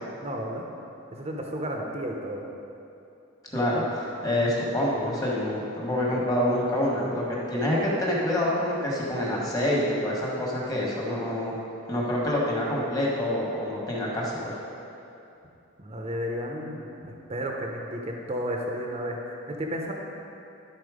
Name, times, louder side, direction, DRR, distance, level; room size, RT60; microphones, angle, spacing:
voice 1, 0.2-0.6 1.1-2.4 15.8-19.9, equal, 30° right, 1 dB, 0.7 m, -32 dB
voice 2, 3.5-11.5 11.9-14.6, left 1 dB, 20° left, -5 dB, 1.4 m, -27 dB
11.5 x 4.3 x 5.0 m, 2.7 s
head